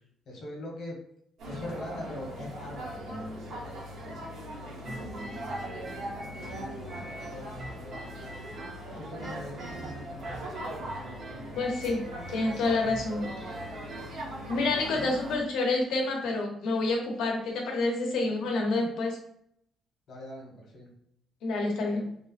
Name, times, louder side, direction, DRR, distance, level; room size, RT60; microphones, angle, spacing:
voice 1, 0.3-1.0 1.4-3.4 3.6-3.8 4.2-5.5 6.0-8.3 8.8-10.6 20.1-20.9, left 1 dB, 55° left, 0 dB, 1.1 m, -43 dB
sound 1, 1.4-15.4, right 1 dB, 75° right, 1.1 m, -40 dB
sound 2, 4.8-8.9 9.2-15.2, right 1 dB, 25° right, 0.6 m, -45 dB
voice 2, 11.6-12.0 12.3-13.5 14.5-19.2 21.4-22.1, left 2 dB, 85° left, 0 dB, 1.0 m, -28 dB
3.3 x 2.1 x 4.1 m, 0.72 s
cardioid pair, 150°, 0 cm